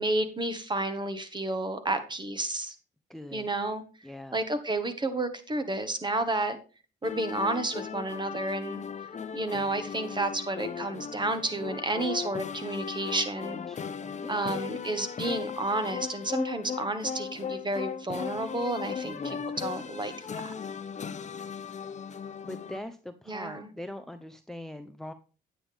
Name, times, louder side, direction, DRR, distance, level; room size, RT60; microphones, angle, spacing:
voice 1, 0.0-2.7 3.3-3.8 4.3-6.6 7.0-8.8 9.3-13.6 14.3-20.5 23.3-23.7, right 2 dB, 20° right, 10 dB, 1.5 m, -31 dB
voice 2, 3.1-3.5 4.0-4.4 13.7-14.7 19.0-19.5 22.4-25.1, left 1 dB, ahead, 10 dB, 0.7 m, -42 dB
sound 1, 7.0-22.8, left 7 dB, 35° left, 0.7 m, -37 dB
9.3 x 8.8 x 3.5 m, 0.36 s
cardioid pair, 90°, 20 cm